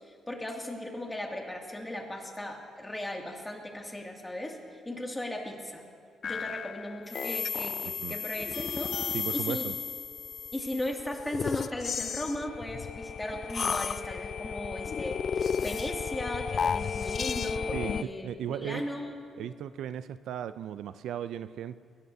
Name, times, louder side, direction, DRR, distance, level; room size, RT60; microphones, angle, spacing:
voice 1, 0.3-5.8 6.2-9.0 9.3-9.7 10.5-19.2, left 1 dB, 15° left, 0 dB, 2.4 m, -37 dB
sound 1, 6.2-18.0, left 6 dB, 45° left, 0.3 m, -33 dB
voice 2, 9.1-9.7 17.7-18.0 18.2-18.8 19.4-21.8, right 10 dB, 75° right, 14 dB, 0.4 m, -36 dB
21.5 x 17.0 x 2.8 m, 2.2 s
cardioid pair, 90°, 0 cm